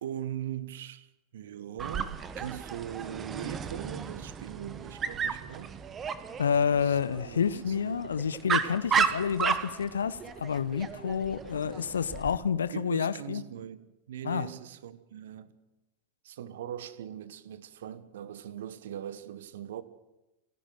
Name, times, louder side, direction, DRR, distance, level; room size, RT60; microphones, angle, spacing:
voice 1, 0.0-5.7 6.8-8.1 12.7-15.6 16.2-19.8, right 10 dB, 60° right, 1.3 m, -40 dB
Dog, 1.8-12.4, right 7 dB, 25° right, 1.3 m, -34 dB
voice 2, 6.4-13.4 14.2-14.5, left 7 dB, 70° left, 0.9 m, -29 dB
29.0 x 11.5 x 7.7 m
figure-of-eight pair, 90°, 0 cm